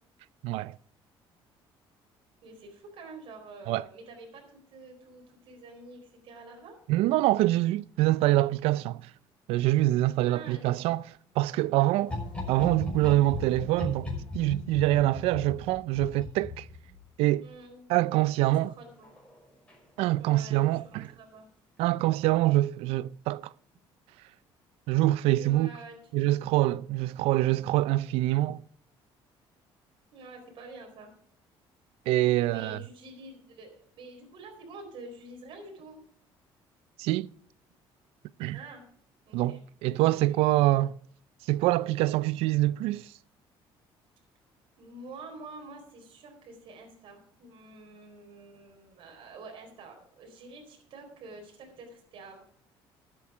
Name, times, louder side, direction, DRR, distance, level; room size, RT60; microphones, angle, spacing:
voice 1, 0.4-0.8 3.7-3.8 6.9-9.0 9.5-11.0 11.4-12.1 12.5-14.1 14.3-16.6 17.2-17.5 17.9-18.7 20.0-21.1 21.8-23.5 24.9-25.7 26.1-28.6 32.1-32.8 37.0-37.3 38.4-38.6 39.3-41.0 41.5-43.1, right 16 dB, 85° right, 0.4 m, -25 dB
voice 2, 2.4-6.8 10.2-10.7 17.4-19.1 20.2-21.5 25.3-26.3 30.1-31.1 32.5-36.0 38.5-38.9 39.3-39.6 40.0-40.6 44.8-52.4, right 3 dB, 60° right, 4.1 m, -48 dB
sound 1, 12.0-17.3 19.0-19.4 19.7-19.8, left 2 dB, 10° left, 5.7 m, -37 dB
13.0 x 9.0 x 4.9 m
cardioid pair, 125°, 10 cm